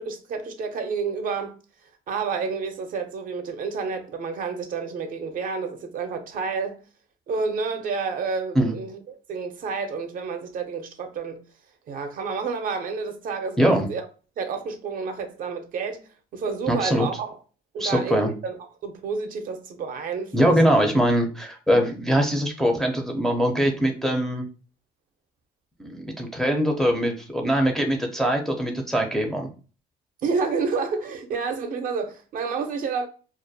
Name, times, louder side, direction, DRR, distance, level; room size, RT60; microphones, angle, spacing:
voice 1, 0.0-1.6 2.1-6.8 7.3-11.4 11.9-14.0 14.4-17.4 17.7-18.6 18.8-20.8 30.2-33.1, right 5 dB, 55° right, 0.5 m, -30 dB
voice 2, 13.6-13.9 16.7-17.1 17.8-18.3 20.3-24.5 25.8-29.5, equal, ahead, 0.4 m, -22 dB
2.3 x 2.1 x 2.6 m
cardioid pair, 110°, 17 cm